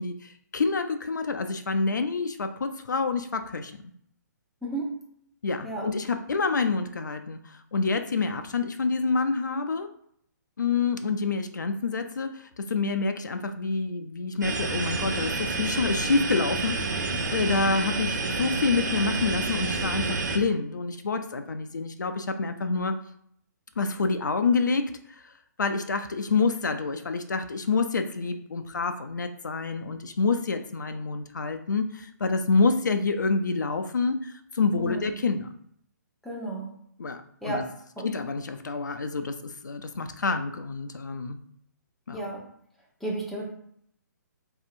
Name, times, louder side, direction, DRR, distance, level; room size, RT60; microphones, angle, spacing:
voice 1, 0.0-3.7 5.4-9.9 10.6-23.0 23.8-24.9 25.2-25.3 25.6-35.5 37.0-37.6 38.0-41.4 42.1-42.2, left 4 dB, 75° left, 8 dB, 0.4 m, -27 dB
sound 1, 14.4-20.4, right 3 dB, 70° right, 0.7 m, -29 dB
voice 2, 34.8-35.1 36.2-36.7 37.4-37.6 38.0-38.1 42.1-42.4 43.0-43.5, right 2 dB, ahead, -4 dB, 0.7 m, -32 dB
4.0 x 2.7 x 2.5 m, 0.68 s
figure-of-eight pair, 130°, 10 cm